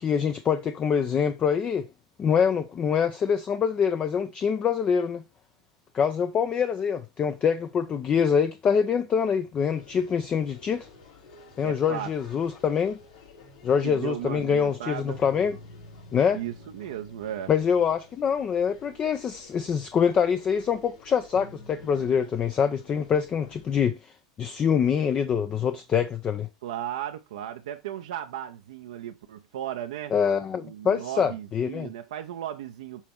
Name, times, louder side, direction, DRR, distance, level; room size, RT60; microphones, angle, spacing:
voice 1, 0.0-1.9 2.2-5.2 5.9-10.9 11.6-13.0 13.6-15.6 16.1-16.4 17.5-24.0 24.4-26.5 30.1-31.9, left 7 dB, 30° left, 0.6 m, -25 dB
sound 1, 9.7-23.9, left 4 dB, 70° left, 4.6 m, -53 dB
voice 2, 11.6-12.1 13.8-15.2 16.3-17.5 26.6-30.1 30.6-33.0, right 11 dB, 70° right, 0.7 m, -35 dB
sound 2, 15.1-20.2 21.3-22.2, left 1 dB, 90° left, 2.7 m, -49 dB
7.3 x 4.2 x 4.4 m
hypercardioid pair, 85°, 3 cm